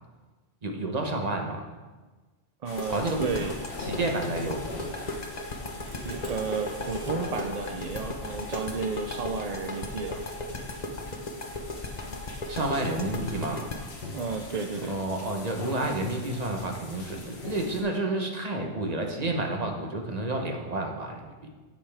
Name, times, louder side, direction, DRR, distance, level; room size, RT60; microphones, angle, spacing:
voice 1, 0.6-1.6 2.9-3.5 3.8-4.6 12.5-13.6 14.9-21.5, right 2 dB, 35° right, 2 dB, 1.1 m, -30 dB
voice 2, 2.6-3.5 6.0-10.2 14.1-14.9, right 5 dB, 55° right, 4 dB, 0.4 m, -32 dB
sound 1, 2.7-17.8, left 2 dB, 60° left, 1.5 m, -42 dB
sound 2, 2.8-15.5, left 2 dB, 40° left, 1.0 m, -36 dB
sound 3, 5.5-7.3 9.9-10.2 10.7-11.5, right 1 dB, 20° right, 1.3 m, -48 dB
15.0 x 5.6 x 3.4 m, 1.3 s
omnidirectional pair, 1.3 m